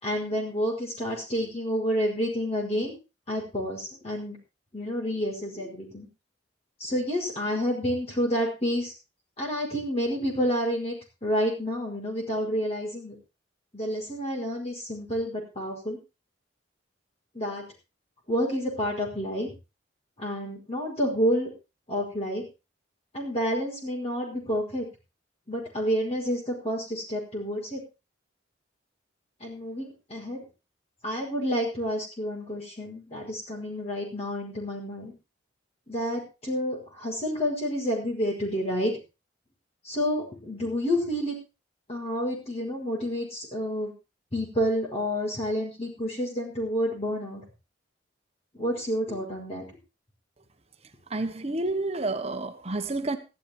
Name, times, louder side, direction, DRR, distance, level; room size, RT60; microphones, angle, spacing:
voice 1, 0.0-2.9 3.3-4.4 4.7-6.1 6.8-8.9 9.4-11.0 11.2-13.2 13.7-16.0 17.3-17.6 18.3-19.5 20.2-21.5 21.9-22.4 23.1-24.9 25.5-27.8 29.4-30.4 31.0-35.1 35.9-38.9 39.8-41.4 41.9-43.9 44.3-47.4 48.5-49.7, equal, 35° left, 5.2 m, -29 dB
voice 2, 51.1-53.2, right 2 dB, 30° right, 1.2 m, -29 dB
14.5 x 11.5 x 4.4 m
head